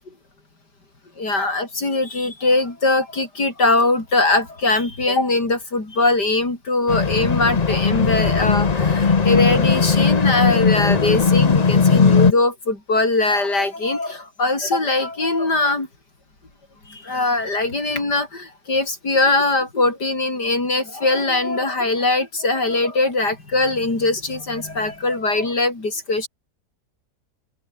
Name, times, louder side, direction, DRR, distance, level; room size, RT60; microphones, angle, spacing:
voice 1, 1.2-15.9 16.9-26.3, left 2 dB, 80° left, 6.3 m, -21 dB
sound 1, 6.9-12.3, left 5 dB, 30° left, 0.8 m, -17 dB
open air
omnidirectional pair, 1.8 m